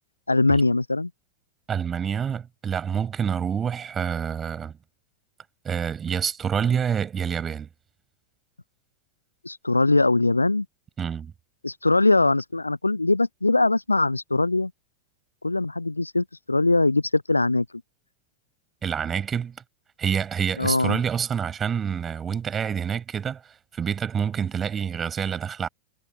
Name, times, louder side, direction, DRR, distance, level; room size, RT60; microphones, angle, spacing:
voice 1, 0.3-1.1 9.4-10.7 11.6-14.7 15.4-17.7 20.6-21.0, left 2 dB, 85° left, 0.7 m, -21 dB
voice 2, 1.7-4.7 5.6-7.7 11.0-11.3 18.8-19.5 20.0-23.4 23.7-25.7, right 7 dB, 20° right, 8.0 m, -27 dB
figure-of-eight pair, 90°, 0 cm